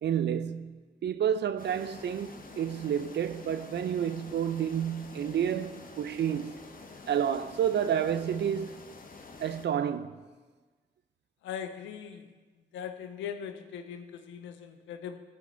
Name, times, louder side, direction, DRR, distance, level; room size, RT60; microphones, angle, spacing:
voice 1, 0.0-6.6 7.1-8.8 9.4-10.2, right 9 dB, 65° right, 0.6 m, -30 dB
sound 1, 1.6-9.7, left 3 dB, 45° left, 1.0 m, -48 dB
voice 2, 11.4-12.3 12.7-15.2, left 8 dB, 90° left, 0.6 m, -40 dB
16.0 x 5.4 x 3.9 m
supercardioid pair, 45°, 19 cm